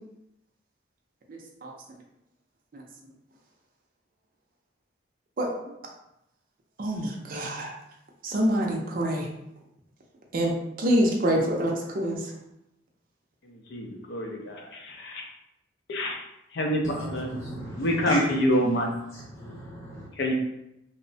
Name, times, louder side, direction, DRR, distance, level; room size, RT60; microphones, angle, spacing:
voice 1, 1.3-1.7 2.7-2.8 5.4-5.5 6.8-7.7 8.2-9.3 10.3-10.5 10.8-12.2, equal, 45° right, 0 dB, 0.4 m, -26 dB
voice 2, 13.7-15.2 15.9-16.2 16.5-17.3 17.8-18.9 20.2-20.3, equal, 60° left, 1 dB, 0.5 m, -26 dB
voice 3, 16.8-18.2 19.1-20.1, equal, 15° left, -7 dB, 0.9 m, -35 dB
2.9 x 2.0 x 2.6 m, 0.83 s
head